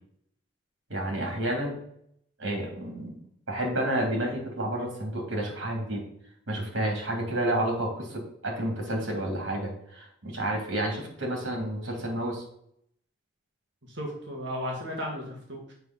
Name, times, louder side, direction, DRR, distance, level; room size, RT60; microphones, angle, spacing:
voice 1, 0.9-1.8 2.4-3.2 3.5-6.1 6.5-12.4, right 1 dB, 90° right, 1 dB, 2.9 m, -30 dB
voice 2, 13.9-15.7, equal, 65° right, 0 dB, 1.9 m, -35 dB
7.6 x 5.7 x 4.2 m, 0.69 s
head